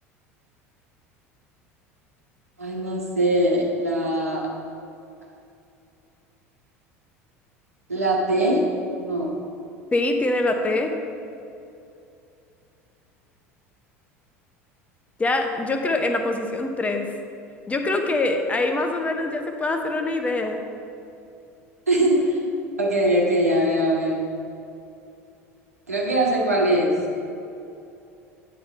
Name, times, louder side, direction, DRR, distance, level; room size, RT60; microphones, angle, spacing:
voice 1, 2.6-4.5 7.9-8.7 9.0-9.3 21.9-22.4 22.8-24.2 25.9-27.1, right 1 dB, 80° right, -2 dB, 1.2 m, -21 dB
voice 2, 9.9-10.9 15.2-17.1 17.7-20.6, left 2 dB, 15° left, 4 dB, 0.8 m, -24 dB
8.8 x 4.3 x 5.6 m, 2.6 s
figure-of-eight pair, 70°, 8 cm